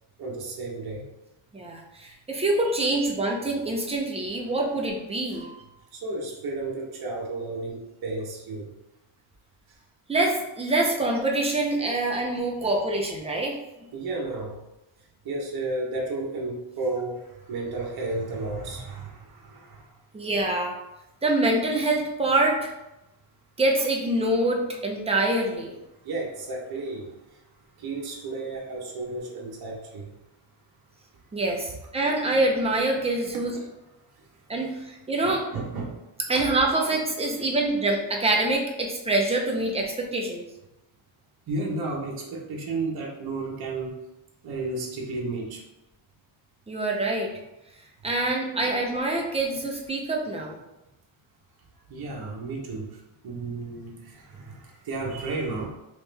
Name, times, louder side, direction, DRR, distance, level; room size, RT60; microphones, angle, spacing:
voice 1, 0.2-1.1 2.6-3.3 5.3-5.6 5.9-8.7 9.7-9.8 12.6-12.9 13.9-14.6 15.0-20.0 26.0-27.4 27.8-30.1 33.3-33.7 34.1-34.9 35.2-36.0 36.3-36.4 37.3-37.5 41.5-44.0 44.4-45.6 48.5-48.7 51.9-55.7, right 3 dB, 50° right, -3 dB, 0.9 m, -33 dB
voice 2, 1.5-5.5 10.1-13.6 20.1-20.7 21.2-22.7 23.6-25.7 31.3-33.5 34.5-35.4 36.3-40.5 46.7-47.3 48.0-50.6, right 2 dB, 15° right, -1 dB, 0.6 m, -25 dB
3.6 x 3.1 x 3.3 m, 0.94 s
wide cardioid pair, 150°, 48 cm